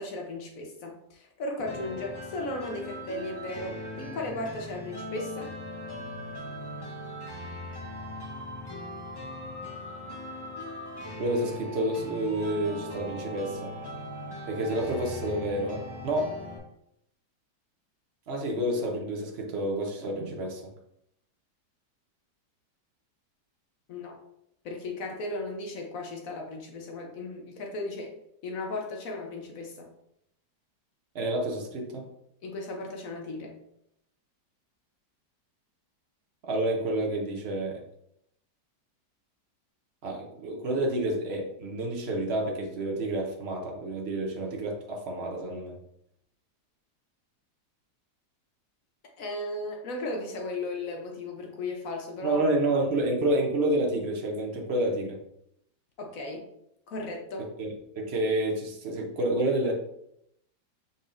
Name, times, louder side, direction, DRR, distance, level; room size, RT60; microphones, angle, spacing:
voice 1, 0.0-5.5 23.9-24.2 24.6-28.1 28.4-29.9 32.4-33.6 49.2-52.4 56.0-56.4 56.9-57.5, left 2 dB, 60° left, 2 dB, 1.0 m, -36 dB
sound 1, 1.6-16.6, left 1 dB, 25° left, 0.5 m, -40 dB
voice 2, 11.2-13.7 14.4-16.3 18.3-20.6 31.1-32.1 36.4-37.8 40.0-45.8 52.2-55.2 57.4-59.7, right 1 dB, 55° right, 0 dB, 0.8 m, -29 dB
5.1 x 4.1 x 2.5 m, 0.78 s
omnidirectional pair, 1.8 m